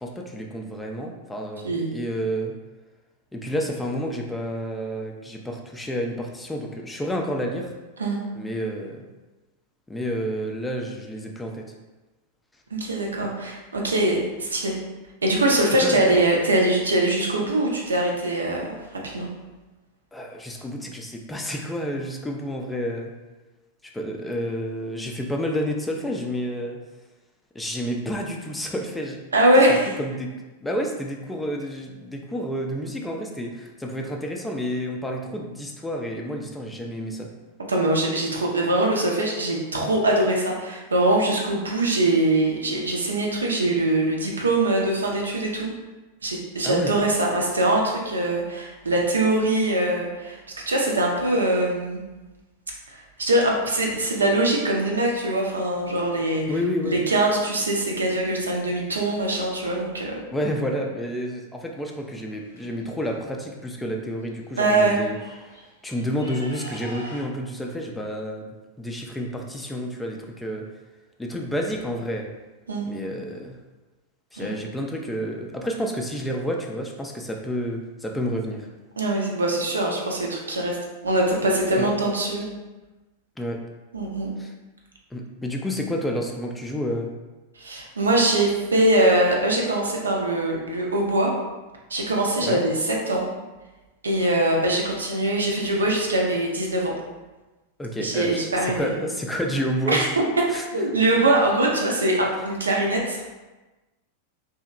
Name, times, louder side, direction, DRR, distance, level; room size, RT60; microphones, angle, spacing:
voice 1, 0.0-2.6 3.3-7.7 8.4-9.0 9.9-11.6 15.8-16.0 20.1-23.1 23.9-26.8 27.5-29.2 29.7-30.3 30.6-37.3 46.6-46.9 56.5-57.0 60.3-65.1 65.4-65.5 65.8-70.7 71.2-72.3 72.8-73.6 74.3-78.7 81.8-81.9 83.4-83.6 84.4-84.5 85.1-87.1 92.4-92.6 97.8-100.0 100.5-100.7, equal, 10° left, 1 dB, 0.3 m, -30 dB
voice 2, 12.7-14.8 15.2-19.3 29.3-29.9 37.7-45.7 46.2-50.4 50.7-52.0 52.9-56.4 56.8-60.2 64.6-65.0 72.7-72.9 74.4-74.5 79.0-80.8 81.0-82.5 83.9-84.3 87.6-91.3 91.9-93.3 94.0-96.9 98.0-98.9 99.9-100.1 100.7-103.4, right 1 dB, 75° right, -1 dB, 0.5 m, -22 dB
sound 1, 62.0-63.1 64.2-64.3 64.6-67.2, equal, 85° left, 0.6 m, -43 dB
2.8 x 2.7 x 2.4 m, 1.2 s
figure-of-eight pair, 90°, 0 cm